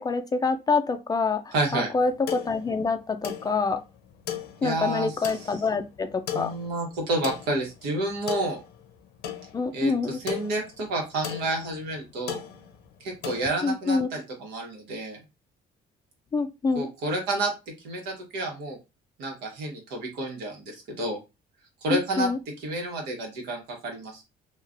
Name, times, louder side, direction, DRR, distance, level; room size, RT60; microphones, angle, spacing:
voice 1, 0.0-3.8 4.6-6.5 9.5-10.2 13.6-14.1 16.3-16.9 21.9-22.4, left 4 dB, 25° left, 0.3 m, -26 dB
voice 2, 1.5-1.9 4.6-5.5 6.3-8.6 9.7-12.4 13.0-15.2 16.7-17.5 17.8-18.8 19.2-21.2 21.8-22.3 22.6-24.2, right 2 dB, 90° right, 1.2 m, -30 dB
sound 1, 2.0-13.5, left 10 dB, 80° left, 0.7 m, -38 dB
3.1 x 2.4 x 2.5 m
cardioid pair, 110°, 17 cm